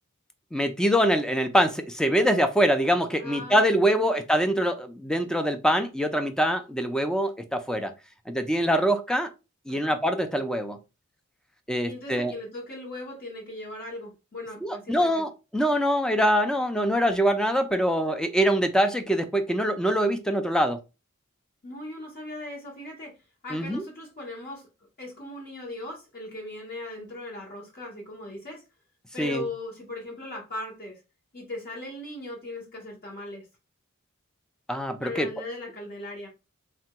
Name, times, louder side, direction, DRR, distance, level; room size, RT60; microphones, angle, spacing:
voice 1, 0.5-7.9 8.3-9.3 9.7-10.8 11.7-12.3 14.6-20.8 23.5-23.8 29.2-29.5 34.7-35.3, equal, 5° left, 0.3 m, -24 dB
voice 2, 3.2-4.2 9.7-10.0 11.8-15.2 21.6-23.1 23.4-24.6 25.0-28.6 29.1-31.0 31.3-33.5 35.0-36.3, left 1 dB, 45° left, 0.8 m, -38 dB
3.3 x 2.2 x 2.9 m
head